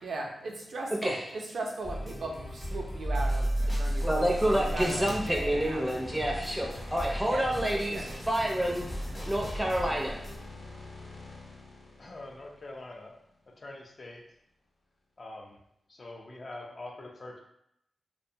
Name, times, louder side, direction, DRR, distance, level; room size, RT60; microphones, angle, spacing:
voice 1, 0.0-5.8 7.2-7.4 7.9-8.0, right 2 dB, 80° right, 0 dB, 0.5 m, -38 dB
sound 1, 1.8-10.4, right 1 dB, 30° left, 0.9 m, -34 dB
voice 2, 4.0-8.0 8.3-8.9 9.3-10.2, equal, 10° right, -1 dB, 0.5 m, -28 dB
sound 2, 4.2-13.4, left 2 dB, 85° left, 0.7 m, -45 dB
voice 3, 12.0-13.2 13.6-14.2 15.2-15.6 15.9-17.4, left 2 dB, 50° left, 1 dB, 0.5 m, -44 dB
2.5 x 2.2 x 2.7 m, 0.76 s
cardioid pair, 55°, 0 cm